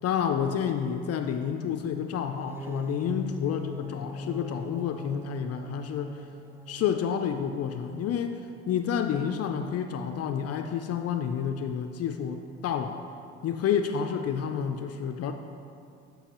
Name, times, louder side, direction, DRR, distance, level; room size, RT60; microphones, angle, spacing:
voice 1, 0.0-6.2 6.7-13.0 13.4-15.3, left 8 dB, 55° left, 6 dB, 0.5 m, -29 dB
sound 1, 2.3-8.3, left 2 dB, 10° right, 0.3 m, -41 dB
11.5 x 5.4 x 3.0 m, 2.5 s
supercardioid pair, 75°, 30 cm